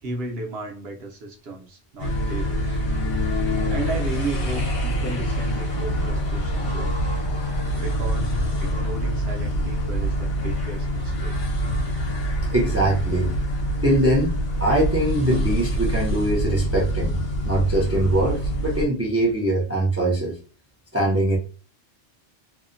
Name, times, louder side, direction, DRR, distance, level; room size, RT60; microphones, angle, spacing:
voice 1, 0.0-2.8 3.7-7.1 7.8-11.6, right 3 dB, 60° right, 1 dB, 0.8 m, -34 dB
sound 1, 2.0-18.9, equal, 65° left, 1.2 m, -25 dB
voice 2, 12.5-13.3 13.8-14.3 14.6-17.2 17.4-20.4 20.9-21.4, right 1 dB, 20° right, -2 dB, 0.3 m, -22 dB
2.7 x 2.1 x 2.4 m, 0.35 s
omnidirectional pair, 1.2 m